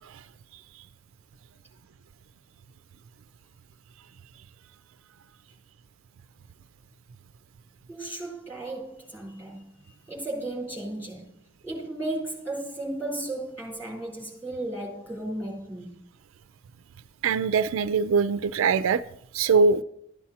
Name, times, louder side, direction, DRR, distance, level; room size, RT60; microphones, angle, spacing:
voice 1, 7.9-11.3 11.6-16.0, right 1 dB, 10° left, 3.8 m, -35 dB
voice 2, 17.2-19.0 19.3-19.8, right 5 dB, 65° right, 0.4 m, -22 dB
14.0 x 9.7 x 2.8 m
head